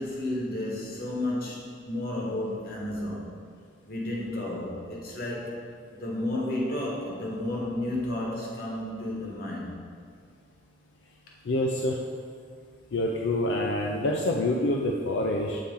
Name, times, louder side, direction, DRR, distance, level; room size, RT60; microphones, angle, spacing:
voice 1, 0.0-3.3 3.9-5.6 6.0-9.8, left 1 dB, 55° left, -3 dB, 1.3 m, -32 dB
voice 2, 11.5-12.0 12.9-15.6, left 1 dB, 85° left, 0 dB, 0.5 m, -26 dB
7.1 x 4.2 x 3.7 m, 2.1 s
head